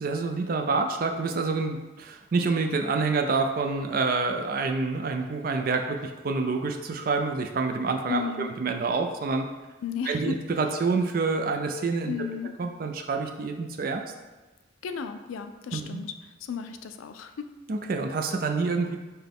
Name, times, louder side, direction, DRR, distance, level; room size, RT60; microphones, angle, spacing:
voice 1, 0.0-9.5 10.1-12.1 12.6-14.0 15.7-16.0 17.7-19.0, right 4 dB, 45° right, 4 dB, 0.4 m, -27 dB
voice 2, 8.1-8.5 9.8-10.4 12.1-12.5 14.8-16.1 16.4-17.5, left 6 dB, 90° left, 8 dB, 0.4 m, -34 dB
5.9 x 2.2 x 3.5 m, 1.2 s
head